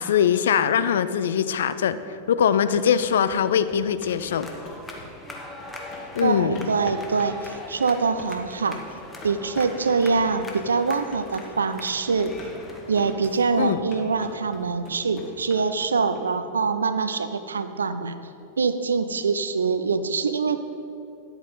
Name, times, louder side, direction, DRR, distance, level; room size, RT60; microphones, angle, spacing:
voice 1, 0.0-2.0 2.3-4.5 6.1-6.7 13.6-13.8, left 8 dB, 60° left, 13 dB, 0.4 m, -22 dB
sound 1, 2.5-16.2, left 2 dB, 35° left, 2.0 m, -44 dB
sound 2, 4.2-13.1, left 2 dB, 15° left, 1.3 m, -41 dB
voice 2, 6.2-8.8 9.2-12.3 12.9-18.1 18.6-20.6, right 4 dB, 70° right, 11 dB, 0.5 m, -24 dB
10.0 x 7.9 x 4.1 m, 2.6 s
figure-of-eight pair, 90°, 0 cm